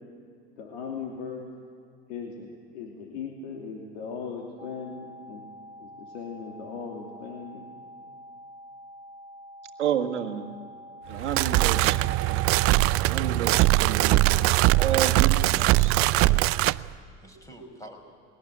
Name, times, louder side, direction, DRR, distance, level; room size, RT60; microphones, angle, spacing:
voice 1, 0.6-1.5 2.1-5.4 5.8-7.8, left 5 dB, 75° left, 0 dB, 2.9 m, -38 dB
sound 1, 4.6-14.9, equal, 20° right, 2.0 m, -47 dB
voice 2, 9.8-10.6 11.1-12.0 12.3-12.4 13.0-14.2 14.8-15.9, right 9 dB, 90° right, 5 dB, 1.6 m, -30 dB
sound 2, 11.1-16.8, right 18 dB, 45° right, 0.5 m, -21 dB
voice 3, 15.5-16.7 17.2-18.0, right 1 dB, 10° left, 4 dB, 4.9 m, -46 dB
21.5 x 18.0 x 9.2 m, 2.3 s
hypercardioid pair, 90°, 34 cm